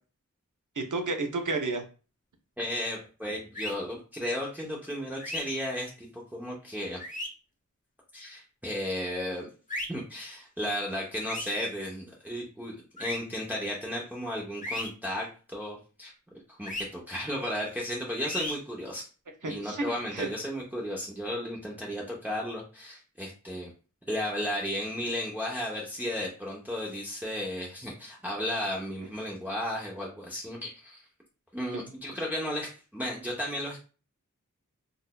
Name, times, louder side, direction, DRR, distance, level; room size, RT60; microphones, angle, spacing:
voice 1, 0.8-1.8 19.4-20.3 31.7-31.9, right 3 dB, 75° right, 4 dB, 0.7 m, -31 dB
voice 2, 2.6-7.0 8.1-9.5 9.9-16.1 16.5-19.0 19.4-23.7 24.1-31.0 31.5-33.8, left 1 dB, 5° right, -3 dB, 0.7 m, -34 dB
sound 1, 3.5-3.7 5.2-5.4 7.0-7.3 9.7-9.9 11.3-11.5 13.0-13.2 14.6-14.9 16.6-16.8 18.2-18.5, left 1 dB, 25° left, 0.7 m, -34 dB
4.0 x 2.5 x 2.2 m, 0.36 s
wide cardioid pair, 45°, 31 cm